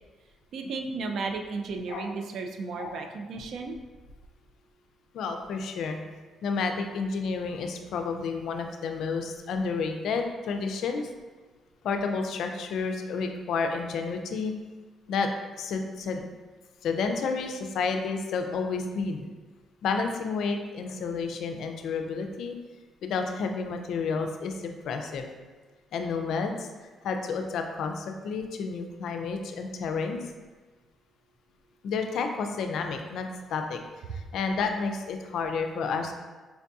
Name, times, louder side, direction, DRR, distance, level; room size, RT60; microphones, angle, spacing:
voice 1, 0.5-3.8, right 4 dB, 70° right, 4 dB, 0.4 m, -34 dB
voice 2, 5.1-6.0 6.4-11.1 11.8-14.5 15.1-15.3 15.6-16.2 16.8-19.3 19.8-22.5 23.0-25.3 25.9-26.7 27.0-30.3 31.8-33.8 34.1-36.1, left 4 dB, 75° left, 5 dB, 0.3 m, -30 dB
4.5 x 2.6 x 2.3 m, 1.3 s
cardioid pair, 90°, 0 cm